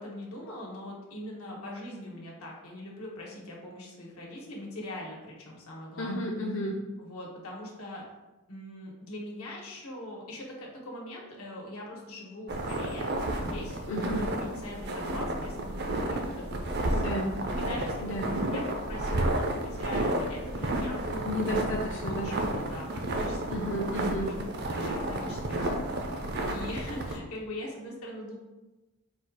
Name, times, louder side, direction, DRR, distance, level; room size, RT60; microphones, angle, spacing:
voice 1, 0.0-6.3 7.0-8.0 8.5-17.1 17.6-18.2 18.5-21.6 22.1-23.4 24.2-24.4 24.6-26.0 26.5-28.4, left 1 dB, 90° left, -2 dB, 1.2 m, -42 dB
voice 2, 6.0-6.8 13.9-14.2 16.9-17.3 18.0-18.4 21.2-22.3 23.5-24.3, equal, 60° left, -3 dB, 0.5 m, -32 dB
sound 1, 12.5-27.2, right 1 dB, 50° right, 0.5 m, -31 dB
4.2 x 2.4 x 4.7 m, 1.1 s
head